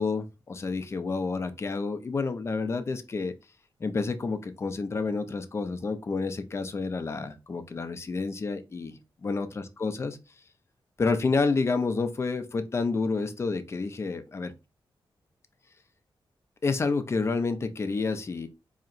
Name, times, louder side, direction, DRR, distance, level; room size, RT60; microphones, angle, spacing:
voice 1, 0.0-3.3 3.8-10.2 11.0-14.5 16.6-18.5, left 4 dB, 30° left, 0.4 m, -29 dB
4.2 x 2.8 x 2.5 m
wide cardioid pair, 140°, 9 cm